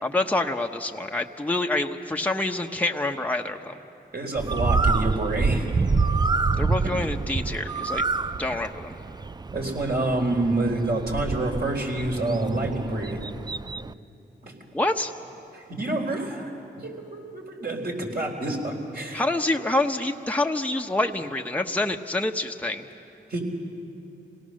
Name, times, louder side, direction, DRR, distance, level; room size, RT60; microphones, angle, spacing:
voice 1, 0.0-3.7 6.6-8.1 8.4-8.9 14.7-15.1 19.1-22.9, left 2 dB, 5° left, 3 dB, 1.1 m, -27 dB
voice 2, 4.1-5.7 9.5-13.2 14.4-14.5 15.5-16.5 16.8-19.2 23.3-23.4, right 2 dB, 50° right, 1 dB, 4.2 m, -27 dB
Bird, 4.4-13.9, right 4 dB, 20° right, 0.4 m, -27 dB
26.5 x 18.0 x 6.5 m, 2.8 s
cardioid pair, 45°, 20 cm